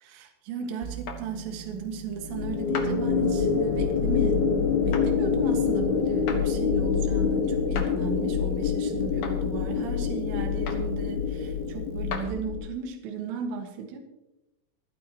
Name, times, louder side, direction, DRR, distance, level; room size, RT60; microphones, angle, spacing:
voice 1, 0.0-4.4 4.8-14.0, right 6 dB, 65° right, 3 dB, 3.5 m, -35 dB
sound 1, 0.8-12.3, right 6 dB, 85° right, 4.0 m, -44 dB
sound 2, 1.1-1.2 2.7-2.9 4.9-5.1 6.3-6.4 7.7-7.9 9.2-9.4 10.7-10.9 12.1-12.3, left 5 dB, 85° left, 1.7 m, -34 dB
sound 3, 2.3-12.7, left 6 dB, 60° left, 2.9 m, -26 dB
26.5 x 10.0 x 3.0 m, 0.94 s
omnidirectional pair, 5.9 m